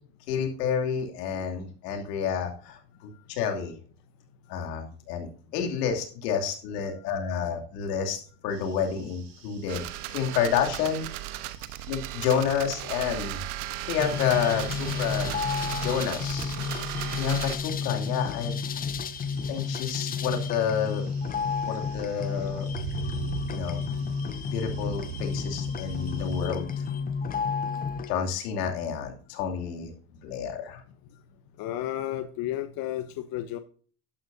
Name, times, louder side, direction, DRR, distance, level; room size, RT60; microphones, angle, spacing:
voice 1, 0.3-3.7 4.5-11.1 11.9-13.4 13.9-15.3 15.7-16.5 17.2-18.6 19.5-21.0 21.6-22.7 23.5-23.8 24.5-26.8 28.1-29.9 30.2-30.8, left 7 dB, 70° left, 2 dB, 2.8 m, -29 dB
sound 1, 8.5-26.5, right 7 dB, 80° right, 5.9 m, -44 dB
sound 2, 9.7-17.6, right 15 dB, 60° right, 1.2 m, -36 dB
sound 3, 14.0-28.1, left 5 dB, 20° left, 0.6 m, -31 dB
voice 2, 31.6-33.1 33.3-33.6, left 13 dB, 45° left, 9 dB, 1.0 m, -32 dB
11.5 x 11.0 x 2.7 m, 0.43 s
hypercardioid pair, 100°, 49 cm